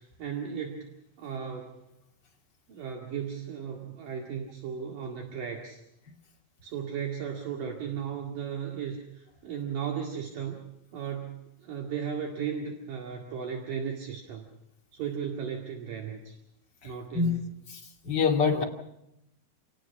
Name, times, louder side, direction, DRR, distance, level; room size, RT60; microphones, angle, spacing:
voice 1, 0.0-1.8 2.7-5.8 6.6-10.6 10.9-14.5 14.9-16.4 16.8-17.4 18.5-18.6, right 7 dB, 60° right, 3.5 m, -36 dB
voice 2, 16.8-17.4 17.7-18.6, left 5 dB, 30° left, 2.5 m, -26 dB
28.0 x 18.5 x 5.8 m
omnidirectional pair, 4.3 m